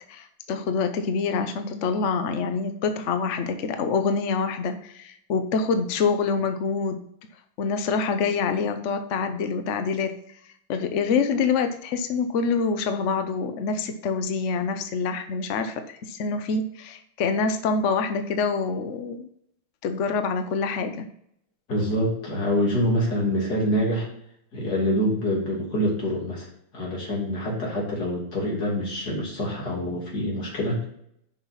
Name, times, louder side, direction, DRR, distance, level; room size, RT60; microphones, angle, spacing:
voice 1, 0.1-7.0 7.6-10.1 10.7-19.3 19.8-21.1, left 5 dB, 70° left, 8 dB, 0.7 m, -26 dB
voice 2, 21.7-24.1 24.5-26.5 26.7-30.9, equal, 50° left, -3 dB, 3.3 m, -25 dB
7.1 x 5.6 x 5.6 m, 0.71 s
omnidirectional pair, 2.3 m